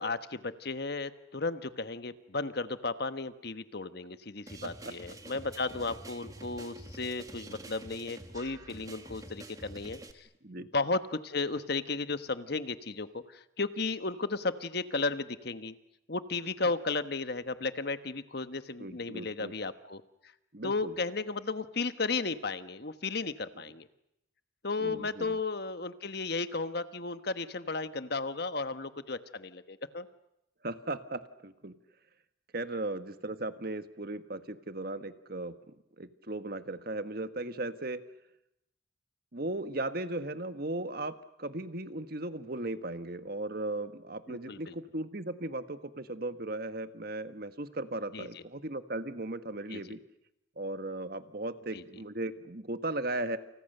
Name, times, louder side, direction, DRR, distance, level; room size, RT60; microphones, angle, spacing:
voice 1, 0.0-10.3 10.6-15.7 16.1-20.3 20.6-23.9 24.6-30.1 44.3-44.7 48.1-48.4 49.7-50.0 51.7-51.8, left 3 dB, 55° left, 11 dB, 1.3 m, -34 dB
sound 1, 4.5-10.1, right 1 dB, 20° right, 1.8 m, -47 dB
voice 2, 4.6-4.9 10.4-10.7 18.8-19.5 20.5-21.0 24.8-25.4 30.6-31.8 32.5-35.6 36.0-38.0 39.3-50.0 50.6-53.4, right 2 dB, 50° right, 10 dB, 1.4 m, -37 dB
29.0 x 28.5 x 6.8 m, 0.83 s
head